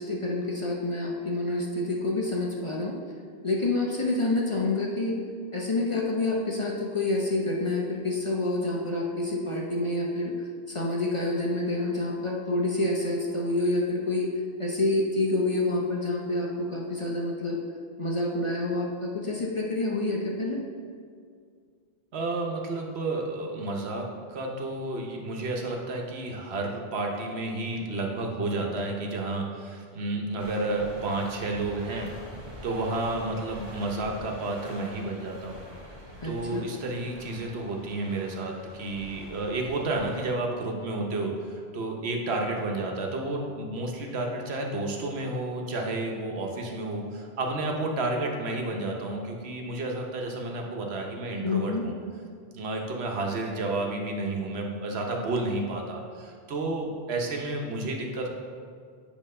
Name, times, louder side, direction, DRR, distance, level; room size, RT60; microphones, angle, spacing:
voice 1, 0.0-2.9 3.4-5.2 5.5-10.3 10.7-14.3 14.6-17.6 18.0-20.6 36.2-36.7 51.4-51.9, left 2 dB, 35° left, -2 dB, 0.6 m, -28 dB
voice 2, 22.1-32.1 32.6-35.7 36.2-51.9 52.5-58.3, right 2 dB, 75° right, 1 dB, 1.1 m, -31 dB
sound 1, 30.4-40.3, equal, 40° right, 1.2 m, -45 dB
8.7 x 3.0 x 5.3 m, 2.1 s
omnidirectional pair, 1.1 m